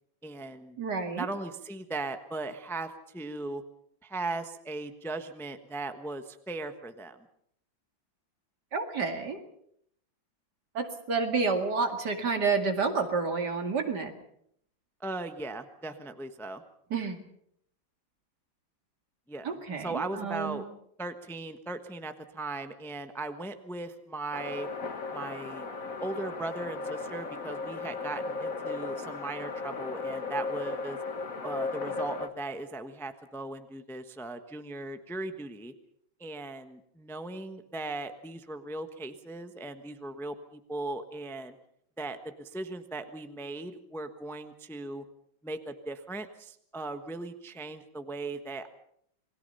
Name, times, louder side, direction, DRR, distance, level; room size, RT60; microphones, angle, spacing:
voice 1, 0.2-0.8 1.1-3.6 4.0-7.2 15.0-16.6 19.3-20.7 21.0-24.7 25.1-25.7 26.0-31.0 31.4-35.7 36.2-41.6 42.0-45.0 45.4-48.7, right 2 dB, ahead, 8 dB, 1.0 m, -38 dB
voice 2, 0.8-1.3 8.7-9.4 10.7-14.1 16.9-17.2 19.4-20.6, right 4 dB, 55° right, 5 dB, 2.8 m, -29 dB
sound 1, 24.3-32.3, left 4 dB, 45° left, 1.9 m, -36 dB
28.5 x 21.0 x 5.6 m, 0.71 s
omnidirectional pair, 2.1 m